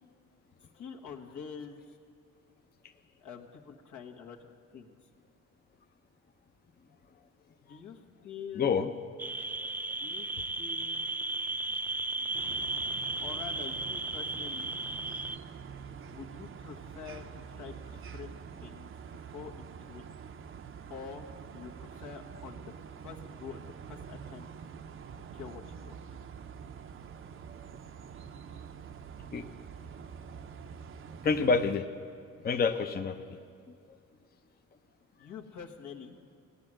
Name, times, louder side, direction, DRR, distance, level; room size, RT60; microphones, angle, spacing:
voice 1, 0.7-2.0 3.2-4.9 7.6-8.7 9.9-11.1 13.2-14.7 16.1-18.9 19.1-20.0 20.9-22.7 23.0-24.5 25.1-26.0 35.2-36.2, left 6 dB, 75° left, 2 dB, 1.5 m, -46 dB
voice 2, 8.6-8.9 29.3-29.5 31.2-31.9 32.4-33.4, left 5 dB, 30° left, 6 dB, 0.6 m, -27 dB
sound 1, 9.2-15.4, right 2 dB, 5° right, 0.3 m, -35 dB
sound 2, 12.3-31.7, right 7 dB, 45° right, 0.6 m, -46 dB
16.5 x 9.8 x 7.6 m, 2.3 s
cardioid pair, 90°, 30 cm